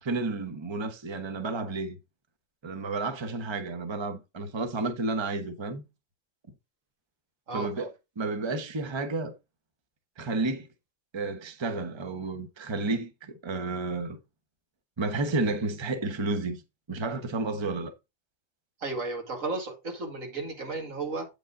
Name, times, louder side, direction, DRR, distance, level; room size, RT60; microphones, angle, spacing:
voice 1, 0.0-2.0 2.6-5.8 7.5-9.3 10.2-10.7 11.1-14.2 15.0-16.6 16.9-17.9, right 3 dB, 25° right, 0.9 m, -31 dB
voice 2, 18.8-21.3, right 3 dB, 85° right, 2.4 m, -33 dB
8.5 x 5.3 x 3.7 m
omnidirectional pair, 1.3 m